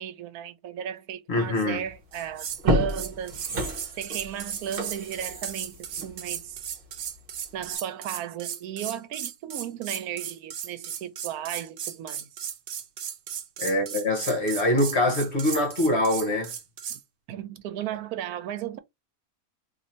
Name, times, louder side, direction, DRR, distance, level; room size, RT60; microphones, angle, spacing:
voice 1, 0.0-3.4 4.0-6.6 7.5-12.3 16.9-17.0 17.3-18.8, right 9 dB, 90° right, 1.1 m, -35 dB
voice 2, 1.3-1.8 13.6-16.5, left 1 dB, 50° left, 1.1 m, -24 dB
sound 1, 1.9-2.0 2.5-7.2 7.6-7.7, equal, 40° right, 1.1 m, -30 dB
sound 2, 2.1-2.6 2.9-17.0, right 8 dB, 65° right, 0.6 m, -36 dB
2.7 x 2.6 x 4.2 m
omnidirectional pair, 1.5 m